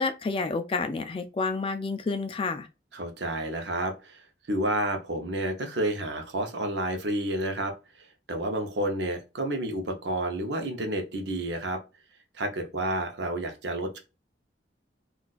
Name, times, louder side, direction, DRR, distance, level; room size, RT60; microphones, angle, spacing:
voice 1, 0.0-2.7, left 4 dB, 30° left, 0.3 m, -29 dB
voice 2, 2.9-4.2 4.5-11.8 12.3-14.0, right 1 dB, 70° right, 0.7 m, -30 dB
3.9 x 2.4 x 2.4 m
head